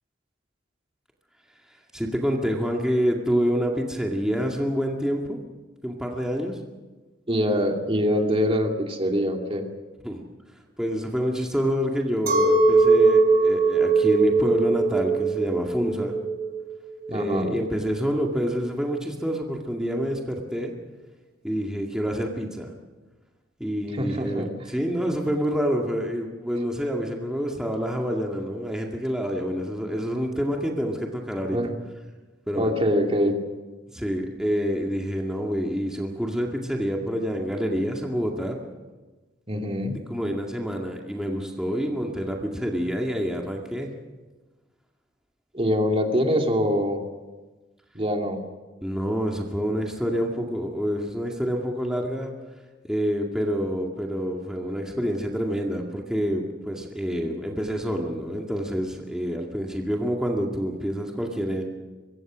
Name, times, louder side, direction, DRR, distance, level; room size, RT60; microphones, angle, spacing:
voice 1, 1.9-5.4 5.8-6.6 10.0-10.2 10.8-16.1 17.1-20.7 21.4-22.7 23.6-31.6 32.5-32.7 33.9-38.6 40.1-43.9 48.8-52.3 52.9-61.7, equal, 5° right, 0 dB, 2.1 m, -27 dB
voice 2, 7.3-9.7 17.1-17.6 23.9-24.5 31.5-31.8 32.5-33.4 39.5-40.0 45.5-47.0 47.9-48.4, equal, 30° right, 2 dB, 2.6 m, -24 dB
Chink clink, 12.3-17.7, right 3 dB, 55° right, 4.6 m, -21 dB
24.5 x 23.0 x 6.3 m, 1.2 s
head